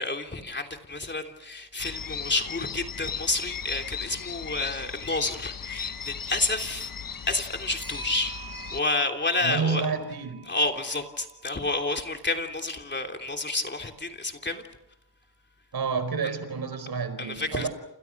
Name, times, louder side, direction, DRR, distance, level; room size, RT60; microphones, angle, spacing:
voice 1, 0.0-8.3 8.7-9.8 10.5-14.6 17.2-17.7, left 2 dB, 25° left, 4 dB, 3.2 m, -30 dB
Clock, 1.6-1.7 2.1-2.2 5.0-5.3 7.8-12.0, right 5 dB, 10° right, 7.4 m, -45 dB
sound 1, 1.8-8.8, left 7 dB, 55° left, 1.2 m, -37 dB
voice 2, 9.4-10.4 15.7-17.7, right 5 dB, 65° right, 11 dB, 4.9 m, -29 dB
29.0 x 28.0 x 6.1 m, 0.85 s
wide cardioid pair, 110°, 40 cm